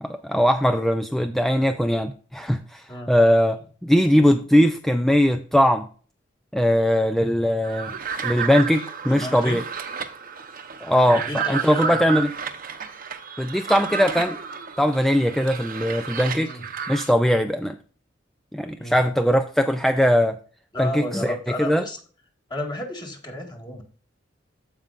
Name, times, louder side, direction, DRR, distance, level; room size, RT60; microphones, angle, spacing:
voice 1, 0.0-5.9 6.5-7.9 8.2-9.6 10.8-12.3 13.4-14.4 14.8-16.5 16.9-17.8 18.5-20.4 20.8-21.8, equal, ahead, 8 dB, 0.4 m, -20 dB
sound 1, 7.6-17.1, right 6 dB, 50° right, 0.9 m, -32 dB
voice 2, 9.1-9.6 11.1-12.0 16.3-16.6 18.8-19.0 20.7-22.0 22.5-23.8, left 1 dB, 25° left, 1 dB, 1.8 m, -33 dB
14.5 x 5.2 x 2.5 m, 0.41 s
head